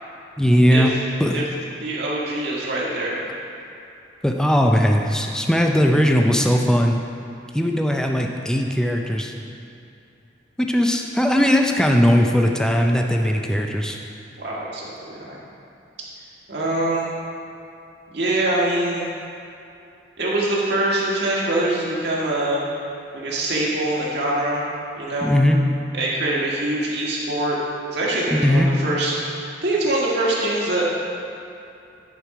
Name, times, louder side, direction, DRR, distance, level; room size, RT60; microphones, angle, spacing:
voice 1, 0.4-0.9 1.2-1.4 4.2-7.0 7.5-9.3 10.6-14.0 25.2-25.6 28.3-28.7, equal, 5° left, 2 dB, 0.5 m, -19 dB
voice 2, 1.8-3.2 14.4-15.4 16.5-17.1 18.1-19.1 20.2-22.6 23.1-24.6 25.0-25.3 25.9-27.6 27.9-31.0, right 1 dB, 65° right, -5 dB, 1.7 m, -24 dB
10.0 x 4.6 x 4.8 m, 2.7 s
head